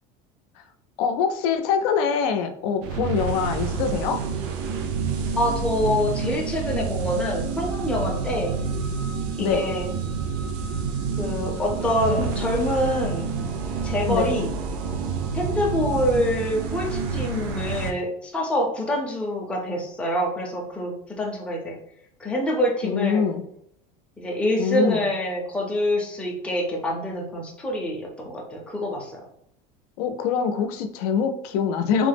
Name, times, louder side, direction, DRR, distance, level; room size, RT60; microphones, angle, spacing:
voice 1, 1.0-4.2 9.4-9.7 14.1-14.4 22.8-23.4 24.6-25.1 30.0-32.1, left 6 dB, 85° left, 7 dB, 0.4 m, -24 dB
sound 1, 2.8-17.9, right 5 dB, 60° right, 0.5 m, -28 dB
voice 2, 5.3-8.6 9.4-9.9 11.2-13.4 13.8-14.5 15.3-21.8 22.2-23.2 24.2-29.2, left 1 dB, 5° left, -2 dB, 0.5 m, -26 dB
3.1 x 2.0 x 3.3 m, 0.74 s
cardioid pair, 160°, 19 cm